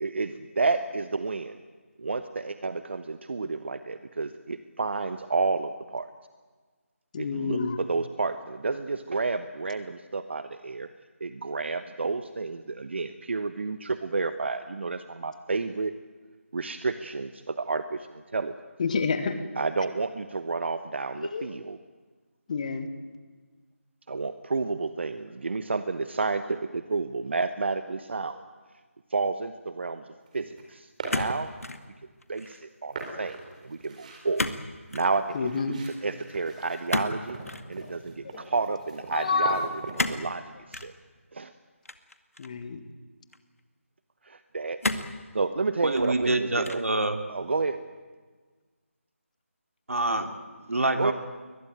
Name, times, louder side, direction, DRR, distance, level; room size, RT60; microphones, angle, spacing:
voice 1, 0.0-1.6 2.0-6.1 7.2-10.9 11.2-15.9 16.5-18.5 19.6-21.8 24.1-28.4 29.1-30.0 30.3-31.5 32.3-33.4 33.6-34.4 34.9-39.7 40.1-40.4 40.7-40.9 41.3-41.5 44.2-44.8 45.3-46.8 47.3-47.8 51.0-51.1, right 3 dB, 50° right, 11 dB, 1.1 m, -30 dB
voice 2, 7.1-7.8 18.8-19.4 21.2-21.5 22.5-22.9 35.3-35.8 37.8-37.9 38.3-38.4 39.1-39.7 42.4-42.8, left 4 dB, 30° left, 10 dB, 1.8 m, -28 dB
sound 1, 30.3-30.6 31.0-31.8 32.4-32.5 32.9-40.1, right 3 dB, 30° right, 4.3 m, -41 dB
sound 2, 31.1-31.9 32.2-32.6 34.4-34.6 34.9-35.1 36.9-37.7 40.0-40.3 40.7-40.9 41.9-42.6 43.3-43.4 44.8-45.2 45.8-46.3 46.6-47.0, left 2 dB, 75° left, 2.1 m, -31 dB
voice 3, 45.8-47.2 49.9-50.3 50.7-51.1, right 2 dB, 70° right, 6 dB, 2.9 m, -26 dB
21.5 x 21.5 x 9.3 m, 1.4 s
figure-of-eight pair, 160°, 8 cm